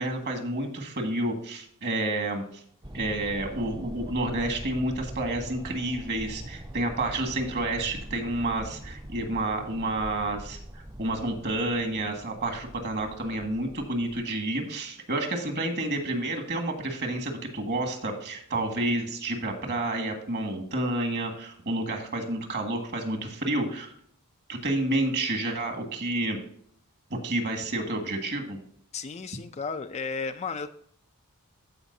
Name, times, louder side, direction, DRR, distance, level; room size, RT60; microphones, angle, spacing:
voice 1, 0.0-2.6 2.9-23.9 24.5-26.4 27.1-28.6, right 2 dB, 50° right, 4 dB, 1.8 m, -30 dB
sound 1, 2.8-14.2, equal, 20° right, 0.7 m, -43 dB
voice 2, 28.9-30.7, left 5 dB, 30° left, 9 dB, 0.4 m, -33 dB
14.5 x 5.0 x 2.7 m, 0.63 s
head